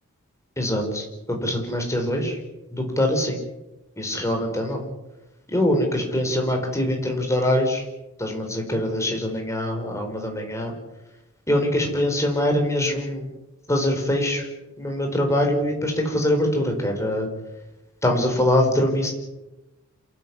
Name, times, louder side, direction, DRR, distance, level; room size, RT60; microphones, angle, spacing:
voice 1, 0.6-2.4 2.7-3.4 4.0-4.8 5.5-7.8 8.2-10.7 11.5-13.3 13.7-14.5 14.8-17.3 18.0-19.1, left 1 dB, 15° left, 3 dB, 4.9 m, -23 dB
27.5 x 13.5 x 9.7 m, 1.0 s
head